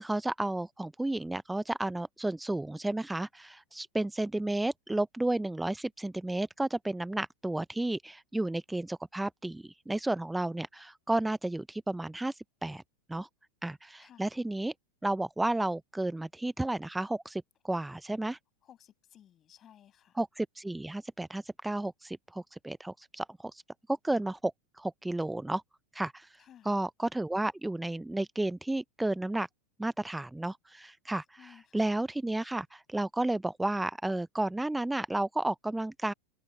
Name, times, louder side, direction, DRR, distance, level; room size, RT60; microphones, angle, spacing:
voice 1, 0.0-12.8 13.1-13.3 13.6-14.7 15.0-18.4 20.2-23.6 23.9-25.6 25.9-29.5 29.8-36.1, right 2 dB, 5° right, 0.4 m, -32 dB
voice 2, 14.0-14.4 18.6-20.2 26.4-26.8 31.4-31.9, left 10 dB, 35° left, 7.1 m, -57 dB
open air
hypercardioid pair, 100°, 0 cm